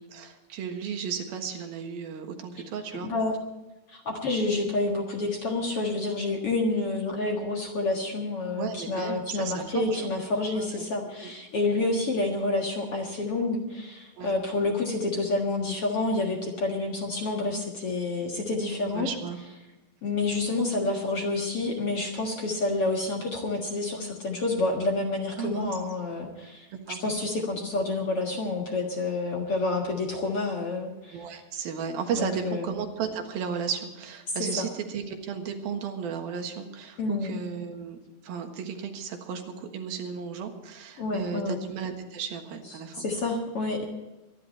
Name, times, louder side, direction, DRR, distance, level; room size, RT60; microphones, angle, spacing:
voice 1, 0.0-3.1 8.6-10.1 10.5-10.9 11.2-11.3 14.2-14.3 18.3-19.4 25.4-25.7 26.9-27.0 31.1-38.0 38.2-43.0, right 7 dB, 75° right, 4 dB, 3.3 m, -34 dB
voice 2, 3.0-3.4 3.9-19.1 20.0-31.2 32.1-32.7 34.6-34.7 37.0-37.3 41.0-41.6 42.9-43.8, left 2 dB, 50° left, 1 dB, 2.1 m, -28 dB
24.0 x 10.5 x 4.3 m, 1.1 s
omnidirectional pair, 4.4 m